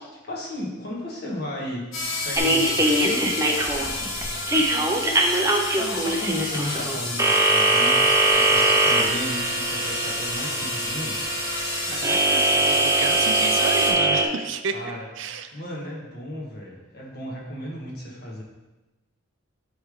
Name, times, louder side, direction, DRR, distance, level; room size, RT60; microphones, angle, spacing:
voice 1, 0.0-1.9 2.2-8.1 8.3-11.2 14.7-15.1 15.5-18.4, left 1 dB, 50° left, -4 dB, 1.5 m, -35 dB
sound 1, 1.9-13.9, left 2 dB, 85° left, 1.3 m, -30 dB
sound 2, 2.4-14.3, right 1 dB, 15° right, 0.5 m, -22 dB
voice 2, 11.9-14.8 15.2-15.6, right 5 dB, 65° right, 8 dB, 0.4 m, -32 dB
8.7 x 3.4 x 3.6 m, 1.1 s
head